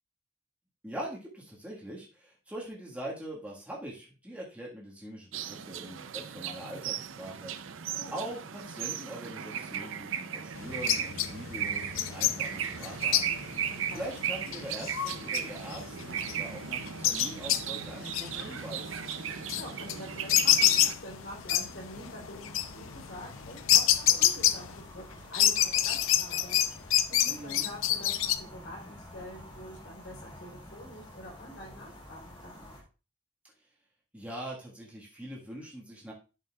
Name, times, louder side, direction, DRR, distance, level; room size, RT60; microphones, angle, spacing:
voice 1, 0.8-7.8 8.1-13.4 13.9-18.9 27.2-27.7 34.1-36.1, right 1 dB, 5° right, -4 dB, 1.6 m, -42 dB
sound 1, 5.3-20.9, right 8 dB, 80° right, 0.6 m, -36 dB
sound 2, 10.6-25.0 25.3-28.4, left 12 dB, 85° left, 0.5 m, -28 dB
voice 2, 13.7-14.0 19.5-26.7 27.1-32.6, equal, 65° left, -1 dB, 3.7 m, -46 dB
sound 3, 20.4-32.8, left 1 dB, 25° left, 1.8 m, -50 dB
11.5 x 5.4 x 2.4 m, 0.32 s
head